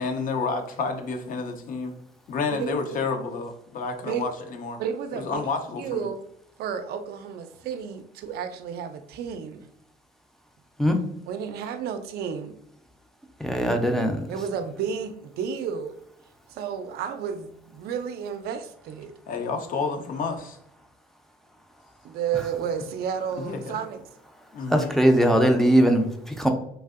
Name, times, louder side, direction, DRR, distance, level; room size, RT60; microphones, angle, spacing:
voice 1, 0.0-1.9 2.3-4.8 5.1-6.1 19.3-20.6 23.4-23.8 24.5-24.9, left 4 dB, 55° left, 0.6 m, -30 dB
voice 2, 2.6-3.0 4.1-4.3 4.8-5.4 5.8-6.2 6.6-9.7 11.3-12.6 14.3-16.0 16.5-19.1 22.0-24.0, right 7 dB, 70° right, 0.4 m, -32 dB
voice 3, 13.4-14.3 24.7-26.5, equal, ahead, 0.4 m, -20 dB
3.3 x 2.5 x 2.4 m
cardioid pair, 110°, 17 cm